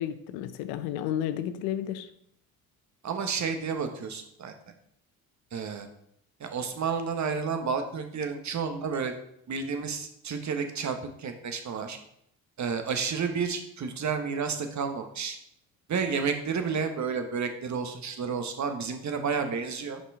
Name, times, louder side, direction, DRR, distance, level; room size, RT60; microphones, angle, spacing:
voice 1, 0.0-2.1, left 10 dB, 80° left, 12 dB, 0.6 m, -32 dB
voice 2, 3.0-4.5 5.5-5.9 6.4-9.1 9.5-12.0 12.6-15.4 15.9-20.0, right 5 dB, 45° right, 7 dB, 1.1 m, -31 dB
5.6 x 4.4 x 4.7 m, 0.72 s
hypercardioid pair, 60°, 39 cm